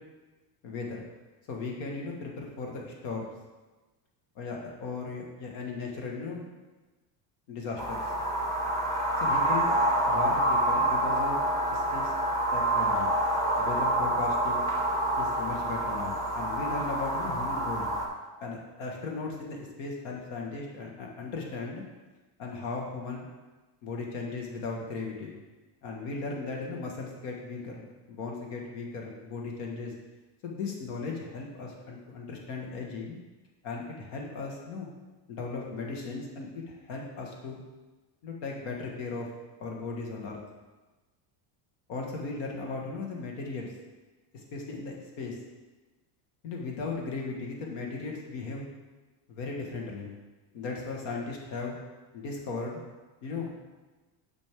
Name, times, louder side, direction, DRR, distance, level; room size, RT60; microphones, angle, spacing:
voice 1, 0.6-1.0 1.5-3.3 4.4-6.5 7.5-8.0 9.2-9.8 10.0-11.4 11.7-12.1 12.5-13.1 13.6-14.7 15.2-18.0 18.4-21.8 22.4-23.3 23.8-25.3 25.8-29.9 30.4-33.2 33.6-34.9 35.3-37.6 38.2-39.3 39.6-40.4 41.9-43.7 44.5-45.4 46.4-48.7 49.3-50.1 50.5-51.8 52.1-52.8 53.2-53.5, left 4 dB, 65° left, 0 dB, 1.8 m, -37 dB
sound 1, 7.8-18.0, right 1 dB, 5° left, 0.8 m, -27 dB
9.2 x 6.3 x 3.7 m, 1.2 s
cardioid pair, 170°, 48 cm